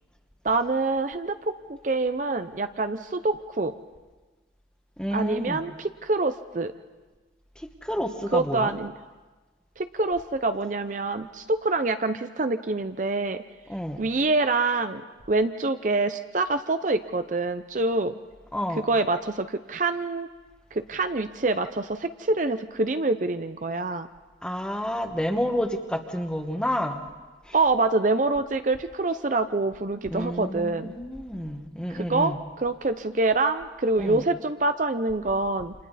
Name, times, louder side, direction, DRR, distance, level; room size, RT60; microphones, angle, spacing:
voice 1, 0.4-1.4 1.8-3.7 5.1-6.7 8.3-8.9 9.8-13.4 14.0-15.0 15.3-18.2 18.9-20.3 20.7-24.1 27.5-30.9 31.9-32.3 32.6-35.7, right 3 dB, 40° right, 9 dB, 0.6 m, -26 dB
voice 2, 5.0-5.6 7.6-8.7 13.7-14.0 18.5-18.8 24.4-27.0 27.4-27.6 30.1-32.4 34.0-34.2, equal, 5° left, 5 dB, 1.3 m, -30 dB
29.5 x 27.0 x 4.1 m, 1.3 s
head